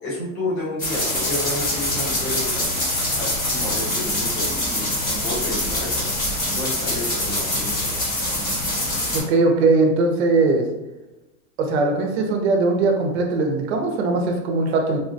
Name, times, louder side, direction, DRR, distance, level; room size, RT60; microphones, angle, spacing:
voice 1, 0.0-6.0 6.5-7.9, left 1 dB, 50° left, -6 dB, 1.4 m, -31 dB
sound 1, 0.8-9.2, left 1 dB, 20° left, 0.8 m, -24 dB
voice 2, 9.1-10.6 11.6-15.0, right 3 dB, 50° right, 2 dB, 0.7 m, -20 dB
3.5 x 2.1 x 2.6 m, 1.0 s
supercardioid pair, 155°, 43 cm